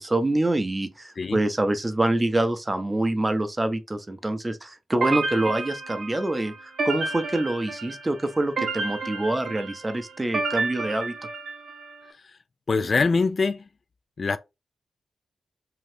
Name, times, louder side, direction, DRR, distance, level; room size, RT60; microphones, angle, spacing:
voice 1, 0.0-11.1, right 1 dB, 25° right, 0.6 m, -26 dB
sound 1, 5.0-11.9, right 3 dB, 70° right, 0.7 m, -31 dB
voice 2, 12.7-13.6 14.2-14.4, left 4 dB, 50° left, 0.3 m, -23 dB
2.8 x 2.4 x 3.2 m
cardioid pair, 65°, 0 cm